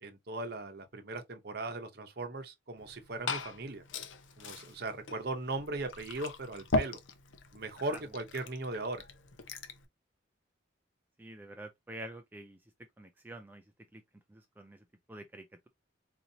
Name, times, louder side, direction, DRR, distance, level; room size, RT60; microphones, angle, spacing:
voice 1, 0.0-3.8 4.4-7.0 7.5-9.0, right 2 dB, 55° right, 0.8 m, -38 dB
Liquid, 2.8-9.8, left 2 dB, 80° left, 0.7 m, -39 dB
voice 2, 11.2-12.6 13.0-13.6 13.9-14.0 14.3-15.7, right 1 dB, 10° right, 0.3 m, -47 dB
4.2 x 2.7 x 2.7 m
head